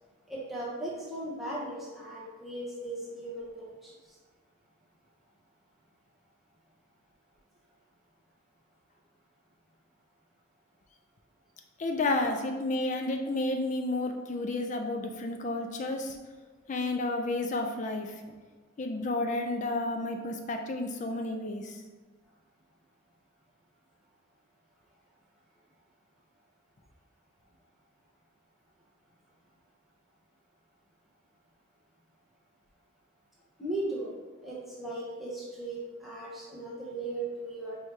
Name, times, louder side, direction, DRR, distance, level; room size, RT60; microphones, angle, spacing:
voice 1, 0.3-3.9 33.6-34.1 34.4-37.8, right 2 dB, ahead, -7 dB, 0.8 m, -37 dB
voice 2, 11.8-16.2 16.7-18.2 18.8-21.8, left 2 dB, 35° left, 4 dB, 0.4 m, -31 dB
4.7 x 3.0 x 3.3 m, 1.3 s
head